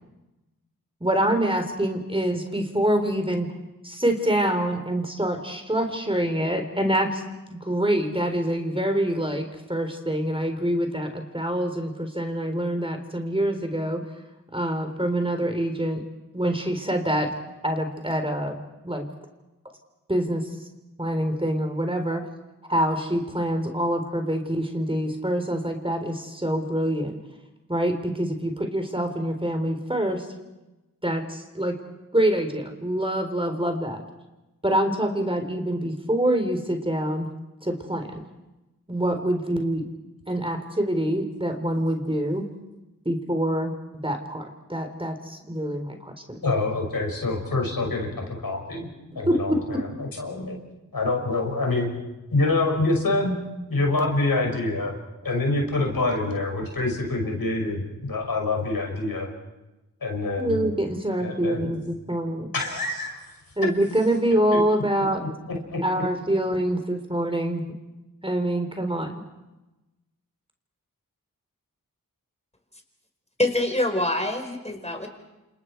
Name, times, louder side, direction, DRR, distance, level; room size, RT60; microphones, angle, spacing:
voice 1, 1.0-3.5 3.8-7.2 7.5-14.0 14.5-16.0 16.3-17.3 17.6-19.0 20.1-20.4 21.0-22.3 22.7-27.2 27.7-30.3 31.0-31.8 32.1-34.0 34.6-37.3 37.6-38.2 38.9-39.9 40.3-42.4 43.1-43.7 44.0-44.4 44.7-46.4 49.1-49.6 60.4-62.5 63.6-65.2 65.8-67.6 68.2-69.1, right 1 dB, 15° right, 5 dB, 3.9 m, -25 dB
voice 2, 46.4-48.9 49.1-50.6 50.9-51.9 52.3-53.4 53.7-54.9 55.2-59.3 60.0-60.7 61.2-61.7 62.5-63.2 64.5-64.6 65.5-65.6 65.9-66.0, left 2 dB, 80° left, 1 dB, 6.1 m, -26 dB
voice 3, 73.4-75.1, left 1 dB, 20° left, 5 dB, 4.7 m, -25 dB
30.0 x 27.5 x 4.7 m, 1.0 s
cardioid pair, 45°, 35 cm